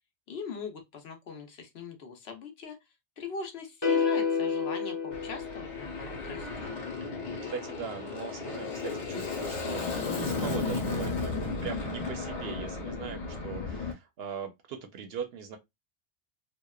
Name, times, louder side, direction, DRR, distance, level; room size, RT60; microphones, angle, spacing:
voice 1, 0.3-2.8 3.2-6.7, left 5 dB, 65° left, 0.9 m, -41 dB
sound 1, 3.8-6.1, left 6 dB, 30° left, 0.6 m, -29 dB
Aircraft, 5.1-13.9, left 4 dB, 85° left, 1.2 m, -34 dB
voice 2, 7.3-11.3 11.6-15.6, right 6 dB, 65° right, 0.7 m, -40 dB
2.9 x 2.1 x 2.2 m
omnidirectional pair, 1.2 m